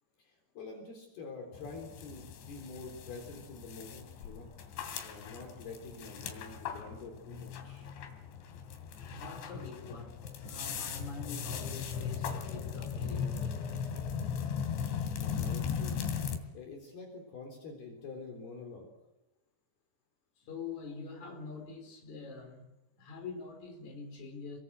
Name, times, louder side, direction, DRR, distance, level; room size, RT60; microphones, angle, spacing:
voice 1, 0.2-4.5 4.7-7.9 14.8-16.0 16.5-18.9, left 3 dB, 60° left, 5.5 m, -47 dB
sound 1, 1.5-16.4, left 7 dB, 85° left, 4.8 m, -38 dB
voice 2, 9.1-13.8 20.4-22.7 23.0-24.6, left 4 dB, 40° left, 5.8 m, -45 dB
28.0 x 22.5 x 8.0 m
omnidirectional pair, 5.2 m